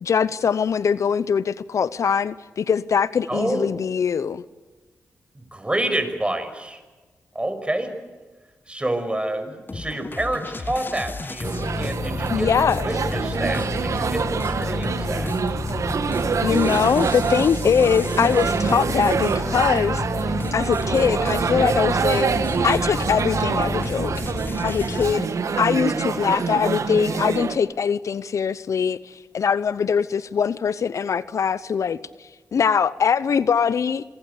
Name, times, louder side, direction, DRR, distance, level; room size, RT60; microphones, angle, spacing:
voice 1, 0.0-4.4 12.3-12.9 16.4-22.3 22.6-24.1 24.6-25.3 25.6-32.0 32.5-34.0, left 6 dB, 70° left, 0.8 m, -22 dB
voice 2, 3.3-3.8 5.3-6.8 7.3-8.0 8.7-15.3, right 1 dB, 20° right, 6.0 m, -28 dB
sound 1, 9.7-25.1, left 3 dB, 40° left, 1.3 m, -30 dB
sound 2, 11.4-27.6, right 5 dB, 65° right, 1.8 m, -26 dB
27.0 x 22.0 x 8.3 m
supercardioid pair, 40°, 6 cm